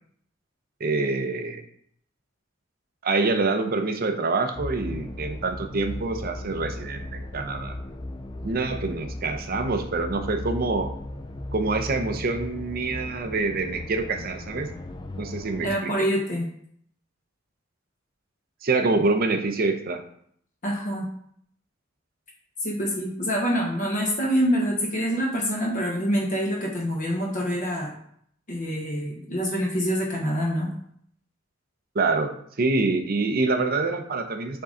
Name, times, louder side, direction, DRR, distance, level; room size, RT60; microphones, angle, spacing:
voice 1, 0.8-1.6 3.0-7.7 8.4-10.9 11.5-14.7 15.2-15.9 18.6-20.0 31.9-34.6, right 3 dB, 50° right, 7 dB, 0.7 m, -26 dB
sound 1, 4.5-15.8, left 1 dB, 20° left, 0.4 m, -36 dB
voice 2, 15.6-16.5 20.6-21.1 22.6-27.9 28.5-30.7, equal, 40° left, -1 dB, 1.0 m, -26 dB
6.9 x 3.8 x 3.8 m, 0.66 s
head